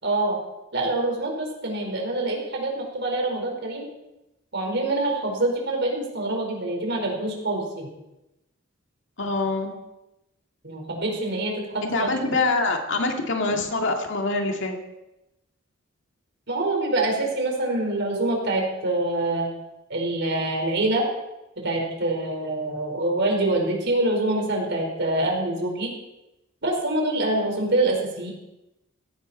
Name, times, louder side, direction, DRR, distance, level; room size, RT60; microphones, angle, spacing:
voice 1, 0.0-0.4 0.7-3.8 4.5-7.9 10.6-11.8 16.5-19.5 19.9-21.0 21.6-25.9 26.6-28.3, right 2 dB, 55° right, 1 dB, 5.0 m, -25 dB
voice 2, 9.2-9.8 11.8-14.8, left 3 dB, 60° left, 2 dB, 2.2 m, -25 dB
17.5 x 16.5 x 4.5 m, 0.94 s
head